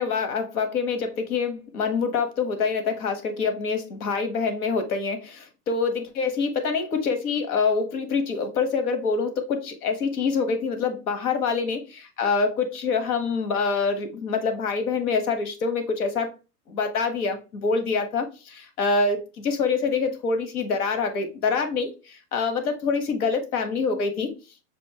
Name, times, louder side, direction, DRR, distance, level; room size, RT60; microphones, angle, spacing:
voice 1, 0.0-16.3 16.7-24.3, left 4 dB, 90° left, 8 dB, 1.3 m, -26 dB
6.1 x 2.6 x 2.8 m, 0.29 s
supercardioid pair, 165°, 43 cm